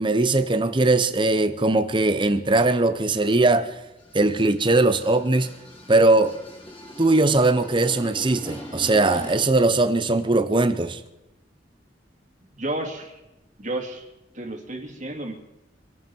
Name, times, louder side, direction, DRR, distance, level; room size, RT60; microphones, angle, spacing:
voice 1, 0.0-3.7 4.1-5.5 5.9-6.3 7.0-11.0, right 2 dB, 25° right, 0.9 m, -20 dB
sound 1, 3.8-9.6, equal, 30° left, 4.3 m, -41 dB
voice 2, 12.6-13.2 13.6-14.0 14.3-15.3, right 1 dB, 40° right, 2.6 m, -31 dB
26.0 x 11.0 x 4.6 m
head